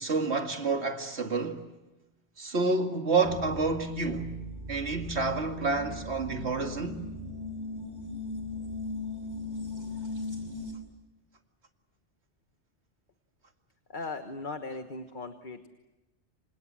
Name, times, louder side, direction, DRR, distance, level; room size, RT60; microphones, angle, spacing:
voice 1, 0.0-1.6 2.4-4.3 4.7-7.1, right 3 dB, 70° right, 2.4 m, -29 dB
sound 1, 3.2-10.7, left 2 dB, 40° right, 5.5 m, -38 dB
voice 2, 13.9-15.7, left 3 dB, 45° left, 1.5 m, -38 dB
29.0 x 26.5 x 7.6 m
omnidirectional pair, 1.2 m